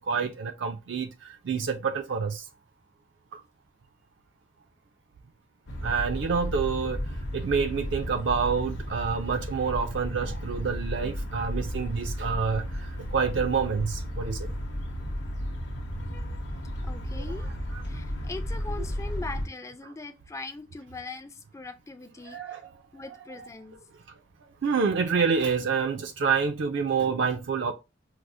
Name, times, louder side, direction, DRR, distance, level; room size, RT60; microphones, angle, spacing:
voice 1, 0.0-2.5 3.3-3.4 5.8-7.0 7.3-14.5 17.7-18.0 22.2-22.7 23.3-23.5 24.4-27.7, right 5 dB, 60° right, 0.4 m, -28 dB
sound 1, 5.7-19.5, equal, 60° left, 0.7 m, -34 dB
voice 2, 16.8-17.5 17.8-22.6 22.9-23.8, left 3 dB, 15° left, 0.3 m, -41 dB
4.6 x 2.0 x 2.6 m
head